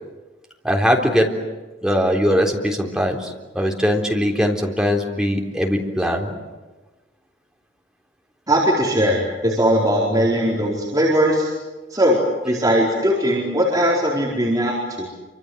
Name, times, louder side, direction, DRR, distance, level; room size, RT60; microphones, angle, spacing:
voice 1, 0.6-1.3 1.8-6.3, equal, 5° right, 0 dB, 3.7 m, -20 dB
voice 2, 8.5-11.5 11.9-15.1, equal, 20° right, -5 dB, 4.6 m, -19 dB
28.0 x 26.0 x 8.1 m, 1.2 s
head